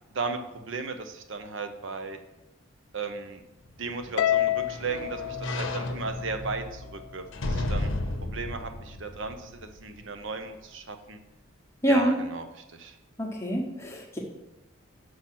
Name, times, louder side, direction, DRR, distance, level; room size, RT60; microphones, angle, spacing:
voice 1, 0.1-2.2 2.9-3.4 3.8-7.9 8.2-11.2 11.9-13.0, right 4 dB, 60° right, 7 dB, 0.7 m, -36 dB
sound 1, 3.7-10.0 10.5-10.6, left 1 dB, 60° left, 0.8 m, -34 dB
Harp, 4.2-6.6, left 12 dB, 85° left, 0.3 m, -28 dB
voice 2, 11.8-12.2 13.2-14.2, equal, 15° left, -1 dB, 1.1 m, -26 dB
5.8 x 4.8 x 6.1 m, 0.95 s
head